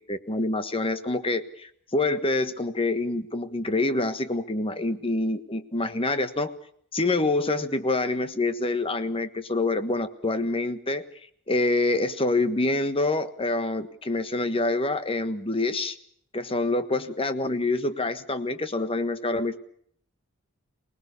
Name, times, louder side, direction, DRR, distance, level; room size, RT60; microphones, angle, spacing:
voice 1, 0.1-6.5 6.9-11.0 11.5-15.9 16.3-19.6, left 2 dB, 25° left, 10 dB, 1.4 m, -26 dB
24.5 x 19.5 x 6.9 m, 0.63 s
head